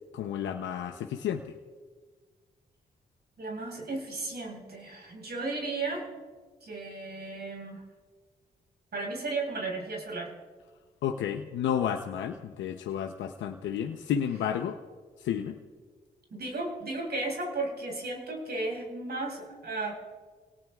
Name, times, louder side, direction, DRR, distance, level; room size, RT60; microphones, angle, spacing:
voice 1, 0.1-1.5 11.0-14.8 15.2-15.6, left 9 dB, 85° left, 4 dB, 0.8 m, -31 dB
voice 2, 3.4-6.1 6.6-7.8 8.9-10.4 16.3-19.9, right 2 dB, 60° right, 1 dB, 4.9 m, -34 dB
28.5 x 18.0 x 2.4 m, 1.5 s
supercardioid pair, 50°, 19 cm